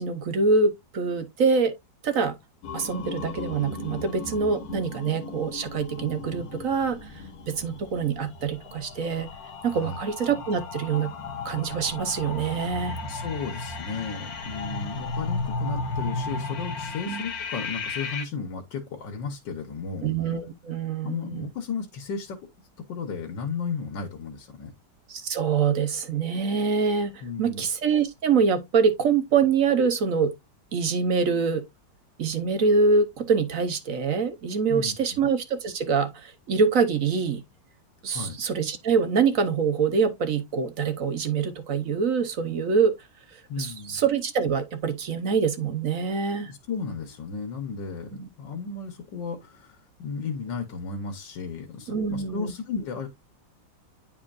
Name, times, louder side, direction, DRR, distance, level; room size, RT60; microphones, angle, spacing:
voice 1, 0.0-1.7 2.0-2.4 2.7-9.3 9.6-11.1 11.4-13.0 17.1-17.2 20.0-21.5 25.1-30.3 30.7-31.7 32.2-37.4 38.0-42.9 43.6-46.5 48.2-48.3 51.9-52.5, right 5 dB, 55° right, 1.1 m, -25 dB
sound 1, 2.6-18.2, left 3 dB, 60° left, 1.4 m, -35 dB
voice 2, 13.0-20.1 21.0-22.4 22.8-24.7 27.2-27.7 34.7-35.2 38.1-38.4 43.5-44.0 46.3-53.1, left 5 dB, 85° left, 1.8 m, -34 dB
9.8 x 4.4 x 2.4 m
omnidirectional pair, 1.9 m